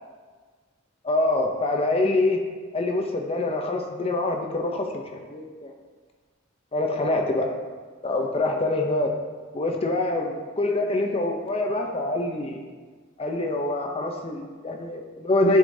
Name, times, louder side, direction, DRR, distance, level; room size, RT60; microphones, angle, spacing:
voice 1, 1.0-2.4 2.7-5.7 6.7-7.5 8.0-9.1 9.5-12.6 13.2-15.6, left 2 dB, 30° left, 2 dB, 0.6 m, -25 dB
10.0 x 7.8 x 2.7 m, 1.5 s
head